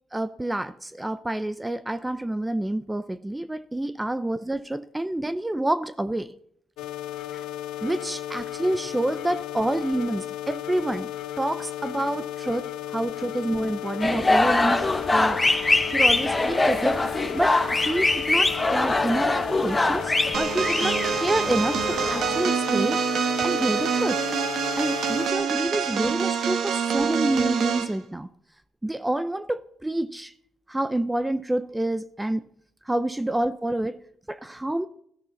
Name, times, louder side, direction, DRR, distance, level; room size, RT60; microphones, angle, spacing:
voice 1, 0.1-6.3 7.3-7.4 7.8-11.1 11.4-15.4 15.9-17.0 17.3-19.4 19.6-23.0 23.4-24.2 24.8-28.3 28.8-30.3 30.7-32.4 32.9-34.0 34.3-34.9, right 1 dB, 10° right, 13 dB, 0.7 m, -28 dB
sound 1, 6.8-25.3, left 12 dB, 85° left, 1.3 m, -35 dB
sound 2, 14.0-22.4, left 2 dB, 15° left, 1.4 m, -23 dB
sound 3, 20.3-28.0, right 7 dB, 65° right, 1.5 m, -26 dB
16.0 x 13.5 x 4.1 m, 0.68 s
cardioid pair, 90°, 0 cm